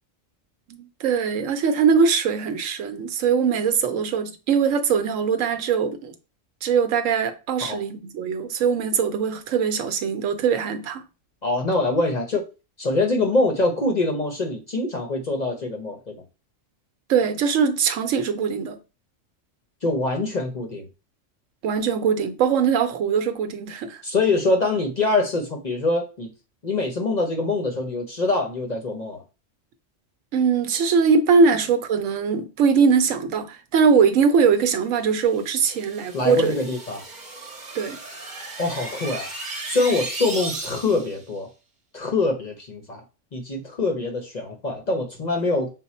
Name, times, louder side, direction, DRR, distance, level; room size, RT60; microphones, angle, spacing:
voice 1, 0.7-6.1 6.6-11.0 17.1-18.8 21.6-24.0 30.3-36.5 37.7-38.0, right 6 dB, 80° right, 1.0 m, -21 dB
voice 2, 11.4-12.4 12.8-16.2 19.8-20.9 24.0-26.3 26.6-29.2 36.1-37.0 38.6-39.3 39.6-41.5 41.9-43.0 43.3-45.7, left 2 dB, 40° left, 0.7 m, -24 dB
sound 1, 35.2-41.2, right 3 dB, 40° right, 1.0 m, -35 dB
5.9 x 2.1 x 4.1 m
omnidirectional pair, 1.3 m